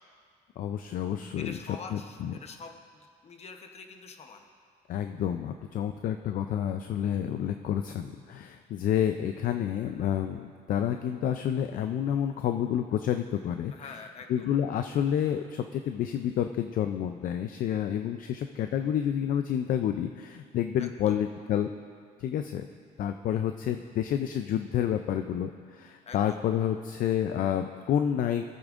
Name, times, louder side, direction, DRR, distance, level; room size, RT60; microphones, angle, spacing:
voice 1, 0.6-1.5 1.9-2.3 4.9-14.0 14.3-21.7 22.2-22.7 23.0-28.4, left 10 dB, 55° left, 7 dB, 0.4 m, -29 dB
voice 2, 1.4-4.5 13.7-14.5 20.8-21.2 23.3-23.5 26.1-26.4, left 5 dB, 40° left, 5 dB, 0.9 m, -46 dB
17.5 x 8.5 x 2.5 m, 2.1 s
cardioid pair, 110°, 17 cm